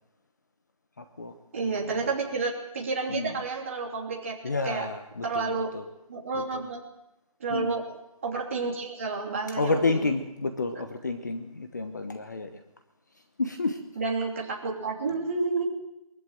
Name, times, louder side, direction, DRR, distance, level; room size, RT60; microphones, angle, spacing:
voice 1, 1.5-4.3 4.6-4.9 5.2-5.7 6.1-6.8 7.4-7.8 8.2-9.9 13.9-15.6, right 4 dB, 20° right, -1 dB, 3.0 m, -30 dB
voice 2, 4.4-5.8 6.5-6.6 7.5-7.8 9.6-12.5 13.4-13.8, left 3 dB, 30° left, 8 dB, 1.0 m, -30 dB
22.5 x 14.5 x 9.0 m, 0.89 s
hypercardioid pair, 180°, 19 cm